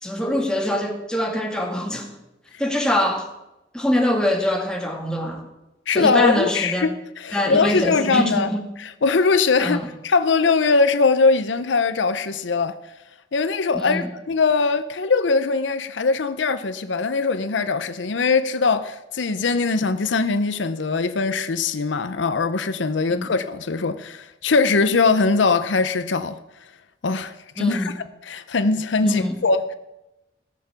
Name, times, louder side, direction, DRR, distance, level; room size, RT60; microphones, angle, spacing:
voice 1, 0.0-2.1 2.6-3.3 3.7-5.4 5.9-6.9 7.3-8.6 9.6-9.8 13.7-14.1 23.1-23.3 27.6-27.9 29.0-29.4, left 1 dB, 5° left, 2.0 m, -23 dB
voice 2, 5.9-8.5 8.8-12.8 13.3-26.4 27.0-27.9 28.2-29.7, left 4 dB, 75° left, 0.7 m, -21 dB
17.0 x 6.8 x 7.1 m
head